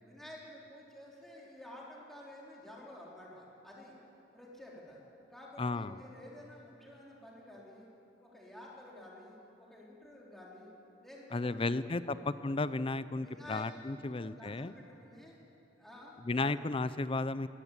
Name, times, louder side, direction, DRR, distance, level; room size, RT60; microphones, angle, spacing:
voice 1, 0.0-3.9 4.3-5.0 5.3-7.9 8.2-10.7 11.0-12.2 13.2-15.4 15.8-16.5, left 1 dB, ahead, -5 dB, 4.1 m, -51 dB
voice 2, 5.6-6.0 11.3-12.2 12.4-14.7 16.3-17.5, left 3 dB, 30° left, 15 dB, 0.5 m, -34 dB
22.5 x 16.0 x 8.3 m, 2.9 s
head